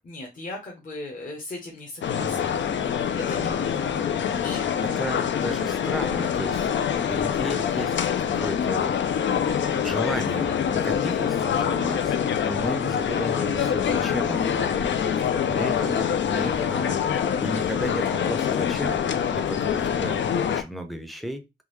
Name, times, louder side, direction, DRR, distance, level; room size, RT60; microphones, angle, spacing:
voice 1, 0.0-2.5 2.8-3.7 4.0-4.7 5.0-5.1 17.2-17.3, left 2 dB, 45° left, 0.8 m, -38 dB
sound 1, 2.0-20.6, left 8 dB, 85° left, 0.4 m, -25 dB
voice 2, 4.8-9.0 9.8-17.2 17.4-21.4, equal, ahead, 0.5 m, -34 dB
3.6 x 2.3 x 3.1 m
wide cardioid pair, 165°, 19 cm